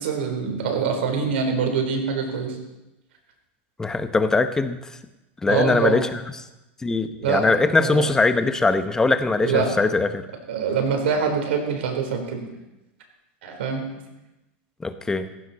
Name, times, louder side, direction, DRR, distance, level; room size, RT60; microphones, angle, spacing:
voice 1, 0.0-2.5 5.5-6.0 7.2-7.4 7.8-8.1 9.4-9.8 10.5-12.4 13.4-13.8, right 6 dB, 85° right, 4 dB, 4.1 m, -24 dB
voice 2, 3.8-4.8 5.4-6.4 6.8-10.2 14.8-15.3, left 3 dB, 10° left, 10 dB, 0.9 m, -21 dB
17.5 x 15.0 x 4.3 m, 0.96 s
supercardioid pair, 150°, 6 cm